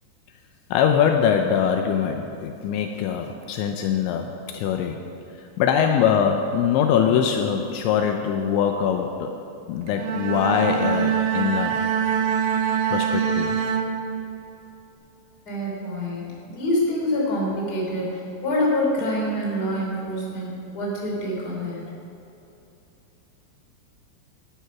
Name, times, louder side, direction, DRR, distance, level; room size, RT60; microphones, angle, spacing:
voice 1, 0.7-5.0 5.6-9.3 9.7-11.8 12.9-13.6, left 8 dB, 80° left, 4 dB, 2.9 m, -22 dB
Bowed string instrument, 9.9-14.5, right 7 dB, 75° right, 2.9 m, -24 dB
voice 2, 15.4-21.9, left 1 dB, 25° left, -3 dB, 3.1 m, -26 dB
13.0 x 11.0 x 5.9 m, 2.9 s
omnidirectional pair, 5.4 m